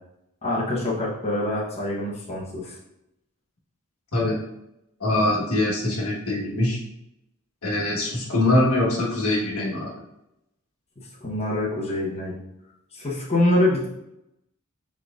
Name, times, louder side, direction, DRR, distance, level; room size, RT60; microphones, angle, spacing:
voice 1, 0.4-2.8 11.0-12.3 12.9-13.9, left 1 dB, 30° left, -6 dB, 1.0 m, -25 dB
voice 2, 5.0-6.8 7.6-9.9, left 1 dB, 75° left, -3 dB, 1.4 m, -23 dB
4.8 x 4.5 x 2.5 m, 0.84 s
head